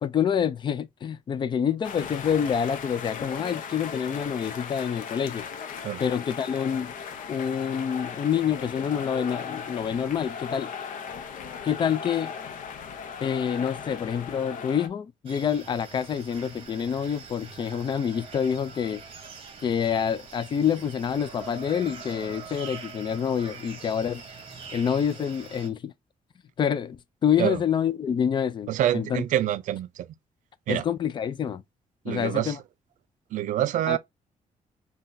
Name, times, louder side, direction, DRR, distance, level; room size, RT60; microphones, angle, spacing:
voice 1, 0.0-5.4 6.0-6.9 7.3-10.7 11.6-12.3 13.2-19.0 19.6-24.2 24.7-25.9 26.6-29.2 30.7-31.6 32.1-32.6 33.9-34.0, left 8 dB, 35° left, 0.3 m, -27 dB
sound 1, 1.8-14.9, left 6 dB, 70° left, 0.7 m, -37 dB
sound 2, 15.3-25.7, right 5 dB, 40° right, 0.9 m, -44 dB
voice 2, 28.7-30.1 30.7-30.8 32.1-32.6 33.3-34.0, right 12 dB, 65° right, 0.4 m, -26 dB
5.6 x 2.3 x 2.5 m
cardioid pair, 140°, 14 cm